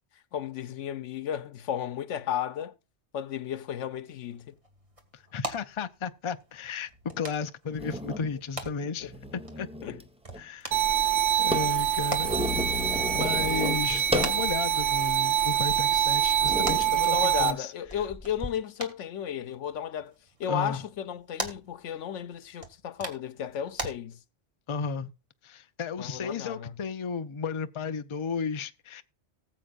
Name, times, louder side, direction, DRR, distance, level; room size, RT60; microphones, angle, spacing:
voice 1, 0.3-2.7 3.1-4.5 8.3-8.4 9.8-10.0 16.9-20.1 20.4-24.2 26.0-26.8, left 9 dB, 85° left, 1.1 m, -34 dB
sound 1, 4.1-23.9, right 1 dB, 30° right, 1.8 m, -43 dB
voice 2, 5.3-6.9 7.2-9.7 10.4-10.8 11.4-12.4 12.8-17.7 20.5-20.8 24.7-25.1 25.4-29.0, left 5 dB, 35° left, 0.5 m, -34 dB
sound 2, 7.1-7.2 7.7-8.3 9.0-10.1 10.3-10.4 10.7-14.5 15.0-15.1 15.8-16.0 16.4-16.9 17.9-18.5, equal, 5° right, 0.8 m, -33 dB
sound 3, 10.7-17.5, right 10 dB, 65° right, 1.2 m, -25 dB
19.0 x 7.5 x 2.4 m
omnidirectional pair, 1.2 m